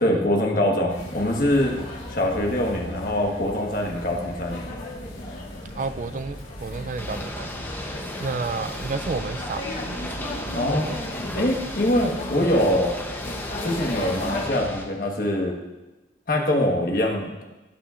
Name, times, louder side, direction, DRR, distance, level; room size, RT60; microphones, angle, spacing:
voice 1, 0.0-1.7 2.1-4.7 10.5-10.9 11.3-13.0 13.6-15.6 16.3-17.4, left 1 dB, 50° left, 1 dB, 1.3 m, -23 dB
sound 1, 0.9-14.4, left 1 dB, 70° left, 2.9 m, -35 dB
voice 2, 5.7-7.9 8.2-10.1 10.8-11.0, right 4 dB, 40° right, 11 dB, 0.3 m, -32 dB
Ocean / Boat Water vehicle, 7.0-14.8, left 1 dB, 10° left, 0.7 m, -35 dB
17.0 x 5.8 x 2.5 m, 1.1 s
head